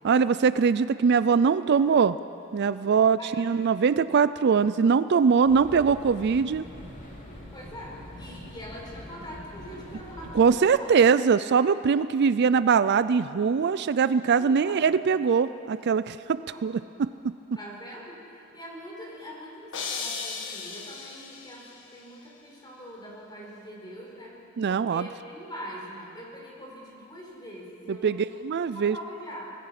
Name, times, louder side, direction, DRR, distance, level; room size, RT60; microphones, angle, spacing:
voice 1, 0.0-2.2 2.5-6.6 10.3-17.1 24.6-25.1 28.0-28.2 28.4-29.0, right 6 dB, 55° right, 14 dB, 0.4 m, -22 dB
sound 1, 5.4-10.5, left 1 dB, 40° left, 3.3 m, -44 dB
voice 2, 7.5-11.0 14.4-14.9 16.3-16.7 17.5-24.4 24.7-28.3 28.6-29.5, equal, 20° left, -2 dB, 4.6 m, -43 dB
sound 2, 19.7-21.8, left 5 dB, 60° left, 1.7 m, -36 dB
25.5 x 18.5 x 5.9 m, 2.7 s
head